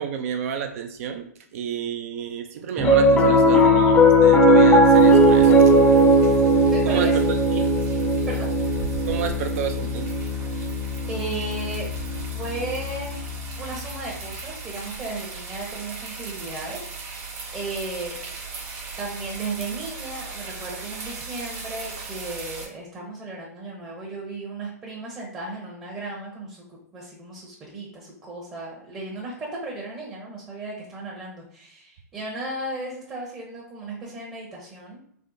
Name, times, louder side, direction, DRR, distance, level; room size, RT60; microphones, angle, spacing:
voice 1, 0.0-5.8 6.1-6.2 6.8-7.7 9.1-10.1, right 8 dB, 55° right, 7 dB, 0.4 m, -30 dB
Piano, 2.8-13.3, equal, 15° left, 0.5 m, -18 dB
sound 1, 4.8-22.7, right 5 dB, 40° right, 1.1 m, -38 dB
voice 2, 6.7-7.2 8.3-8.5 11.1-11.9 12.3-17.3 17.5-18.3 19.0-35.0, right 2 dB, 20° right, -4 dB, 0.8 m, -35 dB
3.5 x 2.1 x 2.6 m, 0.64 s
hypercardioid pair, 120°, 9 cm